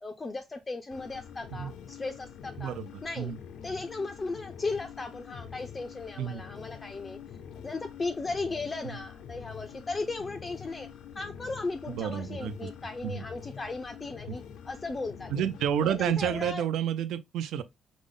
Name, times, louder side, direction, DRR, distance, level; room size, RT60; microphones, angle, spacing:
voice 1, 0.0-2.7 3.0-3.3 3.6-7.2 7.6-10.9 11.1-15.5 15.8-16.7, left 3 dB, 20° left, 0.3 m, -36 dB
sound 1, 0.9-16.5, left 8 dB, 85° left, 0.5 m, -46 dB
voice 2, 2.6-2.9 3.2-3.4 6.2-6.4 8.8-9.0 11.9-12.6 13.0-13.2 14.3-14.4 15.3-17.6, right 9 dB, 85° right, 0.4 m, -30 dB
5.1 x 2.0 x 3.7 m
cardioid pair, 180°, 0 cm